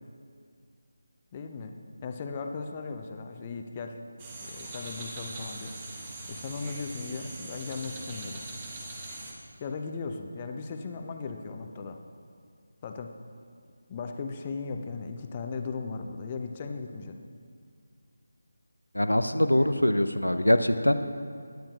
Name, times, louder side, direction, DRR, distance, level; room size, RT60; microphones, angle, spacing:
voice 1, 1.3-4.0 4.4-5.7 6.3-8.5 9.6-12.0 12.8-13.1 13.9-17.2 19.6-19.9, left 4 dB, 25° left, 5 dB, 0.6 m, -37 dB
sound 1, 4.2-9.3, right 2 dB, 20° right, 1.3 m, -41 dB
voice 2, 18.9-21.1, left 1 dB, 85° left, 9 dB, 0.6 m, -23 dB
17.0 x 10.5 x 2.4 m, 2.2 s
figure-of-eight pair, 160°, 0 cm